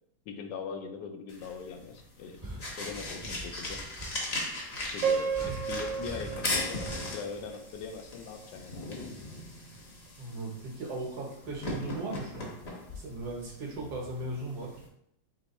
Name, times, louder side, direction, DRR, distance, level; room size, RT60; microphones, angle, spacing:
voice 1, 0.3-2.4 2.8-3.8 4.9-9.2, left 6 dB, 80° left, 5 dB, 1.2 m, -41 dB
sound 1, 1.3-14.9, left 2 dB, 45° left, 0.9 m, -39 dB
sound 2, 2.2-8.3 9.7-10.1, right 2 dB, 20° right, 0.7 m, -45 dB
Piano, 5.0-8.0, right 6 dB, 85° right, 1.4 m, -33 dB
voice 2, 10.2-12.5 12.9-14.7, right 2 dB, 65° right, 0 dB, 1.5 m, -37 dB
3.5 x 3.1 x 4.0 m, 0.72 s
omnidirectional pair, 1.9 m